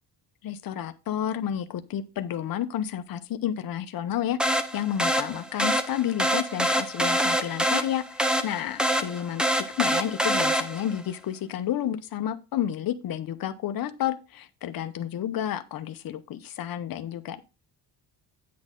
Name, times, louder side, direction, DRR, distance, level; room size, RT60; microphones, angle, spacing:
voice 1, 0.4-9.4 9.8-17.4, left 10 dB, 55° left, 10 dB, 0.9 m, -31 dB
sound 1, 4.4-11.0, equal, ahead, 0.6 m, -26 dB
9.5 x 6.3 x 3.7 m, 0.29 s
cardioid pair, 175°, 43 cm